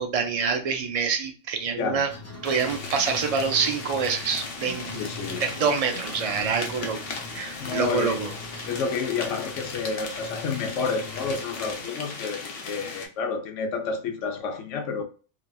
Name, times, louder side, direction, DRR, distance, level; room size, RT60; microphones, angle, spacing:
voice 1, 0.0-2.1 2.4-5.1 5.4-7.0 7.3-8.3, right 5 dB, 75° right, 0.3 m, -26 dB
sound 1, 2.1-11.8, left 2 dB, 20° left, 0.4 m, -42 dB
sound 2, 2.4-13.1, left 4 dB, 55° left, 0.9 m, -37 dB
voice 2, 4.9-5.5 7.6-8.2 8.7-15.0, left 5 dB, 80° left, 1.0 m, -30 dB
3.0 x 2.5 x 2.2 m
omnidirectional pair, 1.3 m